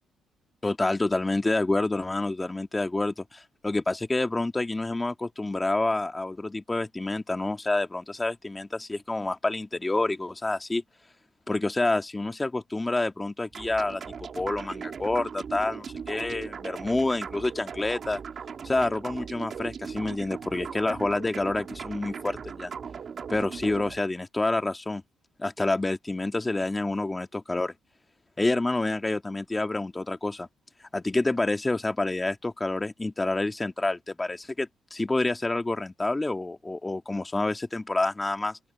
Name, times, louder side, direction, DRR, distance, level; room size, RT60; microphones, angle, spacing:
voice 1, 0.6-10.8 11.5-18.2 18.6-22.7 23.3-25.0 25.4-27.7 28.4-30.5 30.9-38.6, left 2 dB, 15° left, 1.7 m, -28 dB
sound 1, 13.5-24.0, right 6 dB, 50° right, 2.2 m, -38 dB
open air
cardioid pair, 90°, 0 cm